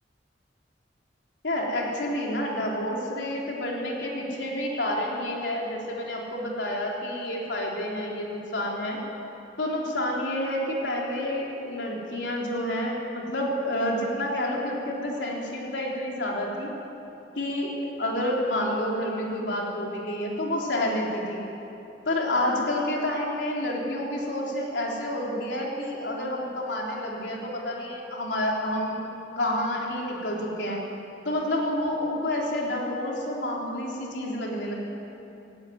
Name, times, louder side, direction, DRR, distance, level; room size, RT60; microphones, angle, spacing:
voice 1, 1.4-9.0 9.6-16.7 17.4-21.5 22.1-29.0 29.4-30.8 31.3-34.7, left 1 dB, 85° left, -2 dB, 3.6 m, -29 dB
17.5 x 17.5 x 9.4 m, 2.9 s
head